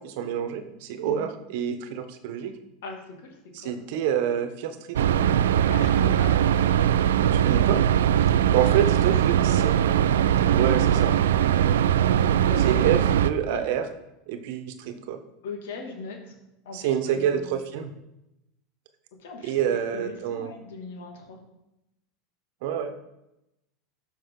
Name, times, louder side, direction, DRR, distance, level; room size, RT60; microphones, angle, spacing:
voice 1, 0.0-2.5 3.5-5.0 7.3-7.8 8.5-9.8 10.5-11.2 12.6-13.9 14.3-15.2 16.7-17.9 19.4-20.5 22.6-22.9, right 9 dB, 65° right, 9 dB, 1.1 m, -27 dB
sound 1, 4.9-13.3, right 10 dB, 80° right, 0.4 m, -21 dB
voice 2, 5.7-6.3 8.7-8.8 12.4-12.9 13.5-13.6 15.4-16.2 16.7-17.5 19.2-21.4, left 4 dB, 75° left, 1 dB, 2.4 m, -38 dB
13.0 x 5.4 x 3.9 m, 0.89 s
hypercardioid pair, 95°, 0 cm